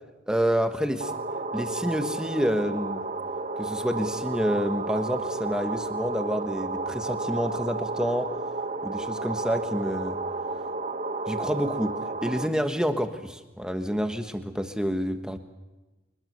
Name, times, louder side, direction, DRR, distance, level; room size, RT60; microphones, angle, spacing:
voice 1, 0.3-1.0 1.5-3.0 3.6-8.3 8.8-10.2 11.3-12.0 12.2-15.4, equal, 5° right, 6 dB, 1.3 m, -28 dB
sound 1, 1.0-12.5, right 3 dB, 40° right, 1.1 m, -32 dB
24.5 x 20.5 x 6.8 m, 1.1 s
head